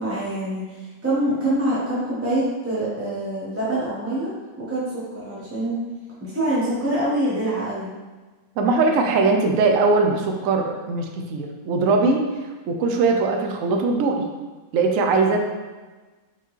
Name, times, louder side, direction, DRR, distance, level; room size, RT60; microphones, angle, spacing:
voice 1, 0.0-4.3 4.6-5.8 6.2-7.9, right 1 dB, 10° right, -8 dB, 0.7 m, -25 dB
voice 2, 8.6-12.2 12.7-14.2 14.7-15.4, right 3 dB, 70° right, 2 dB, 0.9 m, -20 dB
4.3 x 3.8 x 3.1 m, 1.3 s
omnidirectional pair, 1.7 m